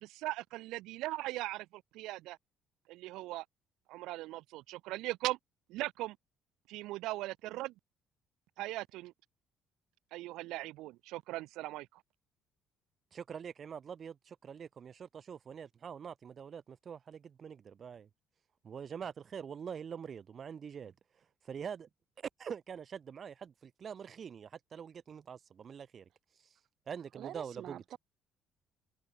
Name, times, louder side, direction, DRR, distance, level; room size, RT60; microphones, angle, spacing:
voice 1, 0.0-2.4 2.9-3.4 3.9-5.4 5.7-6.2 6.7-7.7 8.6-9.1 10.1-11.9, right 18 dB, 85° right, 0.9 m, -39 dB
voice 2, 13.1-18.1 18.6-20.9 21.4-21.9 22.4-26.0 26.4-26.6 26.9-28.0, right 7 dB, 35° right, 0.7 m, -45 dB
voice 3, 27.1-28.0, right 12 dB, 55° right, 1.1 m, -46 dB
cardioid pair, 145°, 0 cm